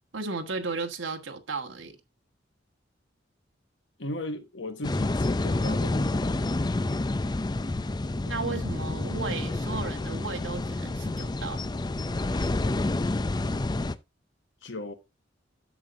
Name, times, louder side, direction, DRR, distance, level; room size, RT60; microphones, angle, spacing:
voice 1, 0.1-2.0 8.3-11.6, right 4 dB, 85° right, 1.5 m, -34 dB
voice 2, 4.0-6.2 14.6-14.9, left 1 dB, 70° left, 1.3 m, -36 dB
sound 1, 4.8-14.0, left 2 dB, 20° left, 0.5 m, -29 dB
11.0 x 7.4 x 2.6 m
head